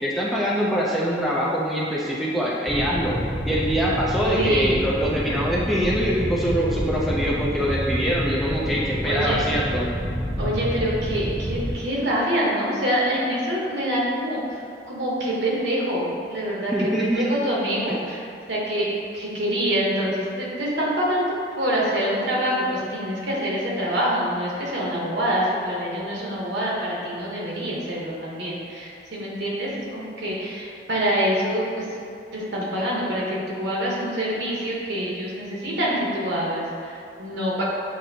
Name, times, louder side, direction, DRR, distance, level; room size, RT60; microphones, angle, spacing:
voice 1, 0.0-3.2 3.4-9.9 16.7-17.3, equal, ahead, -6 dB, 0.4 m, -24 dB
sound 1, 2.7-11.7, equal, 60° left, 1.4 m, -28 dB
voice 2, 4.3-4.8 9.0-9.4 10.4-18.2 18.5-31.9 32.3-37.6, equal, 75° right, -4 dB, 1.0 m, -26 dB
7.2 x 2.5 x 2.7 m, 2.6 s
head